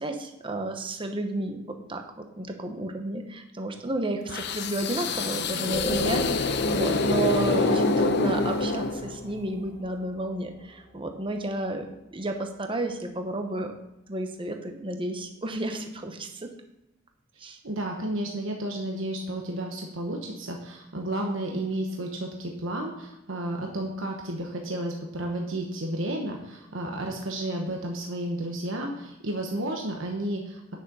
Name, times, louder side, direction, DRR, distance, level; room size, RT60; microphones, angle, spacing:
voice 1, 0.0-1.6 1.9-11.9 12.1-13.7 14.1-16.5 17.4-17.6, right 2 dB, 25° right, 5 dB, 0.9 m, -31 dB
sound 1, 4.3-9.4, left 3 dB, 55° left, 0.6 m, -26 dB
sound 2, 5.7-11.5, left 1 dB, 20° left, 2.4 m, -37 dB
voice 2, 17.3-30.8, right 1 dB, 70° right, 1 dB, 1.1 m, -32 dB
9.4 x 6.4 x 5.4 m, 0.90 s
head